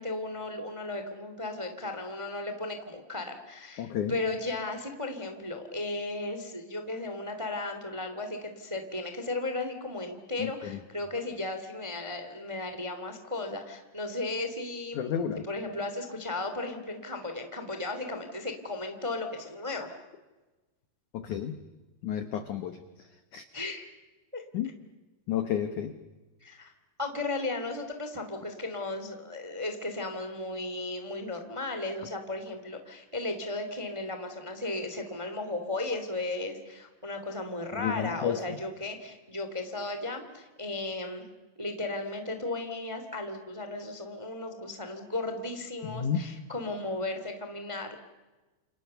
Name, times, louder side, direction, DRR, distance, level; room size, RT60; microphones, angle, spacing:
voice 1, 0.0-15.0 15.4-20.0 23.5-23.9 24.3-24.4 26.4-26.7 27.0-41.2 41.6-48.0, left 2 dB, 10° right, 7 dB, 1.6 m, -35 dB
voice 2, 3.8-4.1 10.4-10.8 14.9-15.4 21.1-21.6 22.0-22.8 23.3-23.4 24.5-24.7 25.3-25.9 37.8-38.4 45.8-46.3, left 9 dB, 70° left, 9 dB, 1.9 m, -31 dB
29.5 x 29.0 x 7.0 m, 1.2 s
omnidirectional pair, 5.2 m